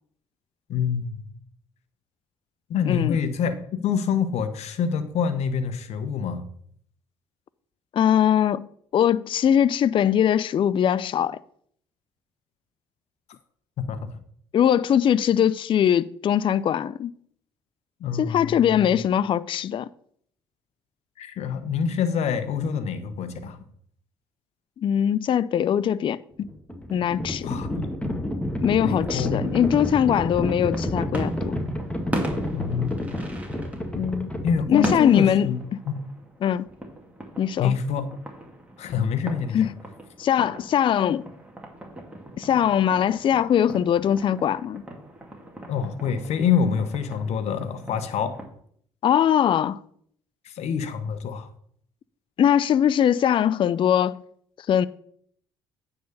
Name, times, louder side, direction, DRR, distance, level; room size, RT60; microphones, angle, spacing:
voice 1, 0.7-1.2 2.7-3.5 3.8-6.5 13.8-14.1 18.0-19.0 21.2-23.6 27.4-27.9 28.8-29.5 32.5-33.2 34.4-35.6 35.9-36.0 37.6-38.1 38.8-39.6 45.7-48.4 50.4-51.5, left 7 dB, 65° left, 1.1 m, -26 dB
voice 2, 2.9-3.2 7.9-8.7 8.9-11.4 14.5-17.1 18.1-19.9 24.8-26.5 26.9-27.6 28.6-31.6 34.0-34.3 34.7-35.8 36.4-36.7 37.4-37.7 39.5-39.7 40.2-41.3 42.4-44.8 49.0-49.8 52.4-54.2 54.7-54.9, left 9 dB, 45° left, 0.4 m, -21 dB
Livestock farm animals working animals, 26.3-35.4, left 1 dB, 10° left, 1.7 m, -30 dB
sound 1, 29.0-48.5, right 1 dB, 10° right, 2.3 m, -38 dB
9.3 x 4.1 x 6.7 m
hypercardioid pair, 60°, 12 cm